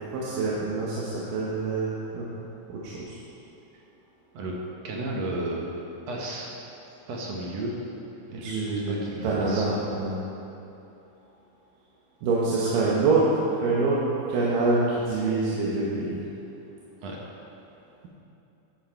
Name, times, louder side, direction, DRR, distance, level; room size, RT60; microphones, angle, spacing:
voice 1, 0.1-2.3 2.7-3.2 8.3-10.2 12.2-13.3 13.6-14.0 14.3-16.2, right 3 dB, 80° right, -6 dB, 2.7 m, -26 dB
voice 2, 4.8-5.7 6.1-6.5 7.1-7.8 8.3-8.5 8.9-9.9 17.0-17.2, right 2 dB, 60° right, -2 dB, 1.9 m, -33 dB
11.0 x 7.4 x 4.5 m, 2.8 s
omnidirectional pair, 3.9 m